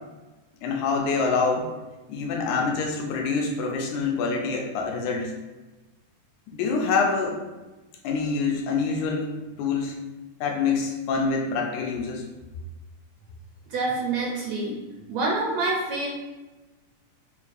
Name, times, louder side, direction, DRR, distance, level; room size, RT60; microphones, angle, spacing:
voice 1, 0.6-1.7 2.1-5.3 6.5-7.4 8.0-9.3 9.6-9.9 10.4-12.2, left 4 dB, 80° left, 1 dB, 1.9 m, -26 dB
voice 2, 13.7-14.8 15.1-16.1, right 3 dB, 80° right, -2 dB, 1.6 m, -26 dB
6.4 x 2.2 x 2.5 m, 1.1 s
omnidirectional pair, 3.5 m